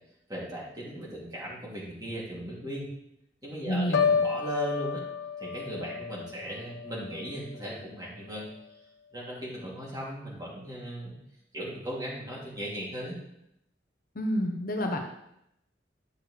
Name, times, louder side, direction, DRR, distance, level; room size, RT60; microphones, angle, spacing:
voice 1, 0.3-2.9 3.4-5.0 5.4-8.5 9.1-11.1 11.5-13.2, equal, 20° right, -6 dB, 2.7 m, -37 dB
voice 2, 3.7-4.1 14.2-15.0, equal, 50° left, 2 dB, 0.9 m, -29 dB
Piano, 3.9-7.9 8.3-8.7, left 6 dB, 75° left, 0.5 m, -31 dB
11.0 x 6.4 x 3.3 m, 0.80 s
head